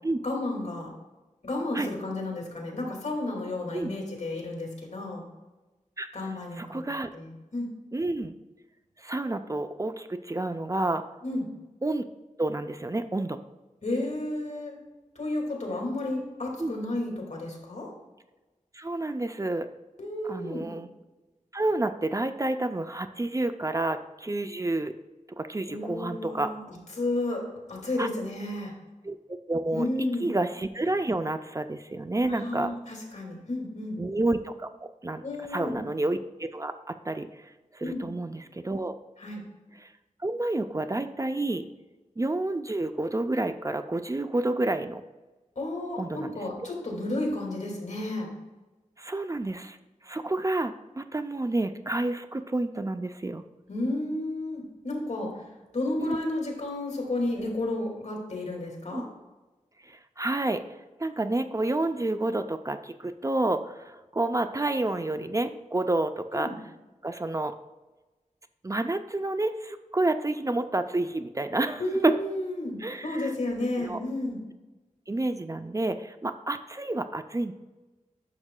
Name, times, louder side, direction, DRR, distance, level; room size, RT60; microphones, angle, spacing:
voice 1, 0.2-0.9 1.4-5.2 6.1-6.8 7.1-7.7 11.2-11.5 13.8-14.8 15.2-17.9 20.0-20.7 25.7-27.4 27.7-28.7 29.7-30.3 32.2-34.0 35.2-35.8 37.8-38.1 39.2-39.4 45.6-48.3 53.7-55.3 55.7-59.1 66.3-66.6 71.8-74.4, left 1 dB, 60° left, 0 dB, 2.1 m, -32 dB
voice 2, 6.6-7.1 7.9-8.3 9.0-11.0 11.8-12.1 12.4-13.4 16.6-16.7 18.7-19.7 20.3-20.9 21.5-24.9 25.4-26.5 28.0-28.1 29.0-29.2 29.5-32.7 34.0-35.2 35.5-39.0 39.8-39.9 40.2-41.6 42.2-45.0 46.0-46.4 49.0-49.8 50.0-53.4 56.0-56.2 58.9-59.0 59.9-60.6 61.0-66.5 67.0-67.5 68.6-72.1 72.8-73.3 73.8-74.0 75.1-77.5, right 2 dB, 25° right, 9 dB, 0.4 m, -29 dB
11.0 x 6.4 x 2.2 m, 1.2 s
wide cardioid pair, 90°, 14 cm